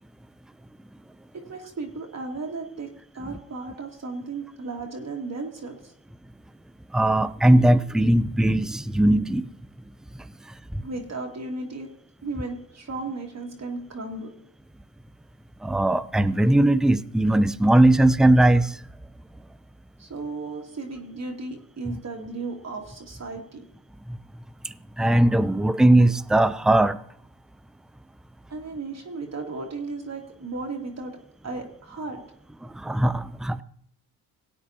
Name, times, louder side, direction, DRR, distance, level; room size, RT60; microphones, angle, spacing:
voice 1, 1.3-2.9 3.1-5.9 10.8-11.9 12.2-14.3 20.0-23.6 28.5-31.1 31.4-32.2, right 3 dB, 40° right, 1 dB, 2.0 m, -35 dB
voice 2, 6.9-9.5 10.2-10.8 15.6-18.8 21.9-22.0 24.1-24.2 24.6-27.0 32.6-33.6, right 1 dB, ahead, 14 dB, 0.4 m, -20 dB
17.0 x 8.6 x 2.8 m, 0.65 s
supercardioid pair, 70°, 40 cm